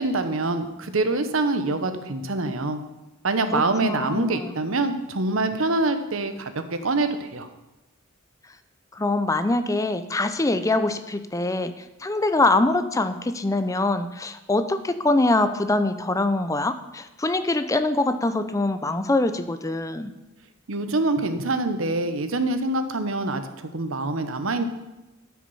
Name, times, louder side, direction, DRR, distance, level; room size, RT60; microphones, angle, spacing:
voice 1, 0.0-2.8 3.2-7.5 20.7-24.7, right 2 dB, 80° right, 9 dB, 1.0 m, -25 dB
voice 2, 3.5-4.5 8.9-20.1, left 2 dB, 15° left, 10 dB, 0.5 m, -24 dB
12.5 x 6.1 x 5.5 m, 1.0 s
head